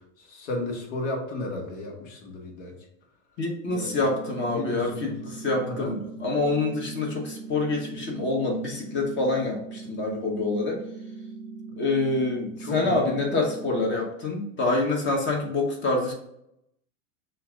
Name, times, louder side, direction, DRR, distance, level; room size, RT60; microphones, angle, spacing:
voice 1, 0.3-2.7 3.7-4.0 4.5-5.1 5.7-5.9 12.6-13.0, left 2 dB, 65° left, 1 dB, 1.7 m, -33 dB
voice 2, 3.4-10.8 11.8-16.1, left 2 dB, 30° left, 1 dB, 1.0 m, -26 dB
sound 1, 3.6-13.7, right 4 dB, 30° right, 0.5 m, -40 dB
5.7 x 2.6 x 3.6 m, 0.78 s
supercardioid pair, 125°, 39 cm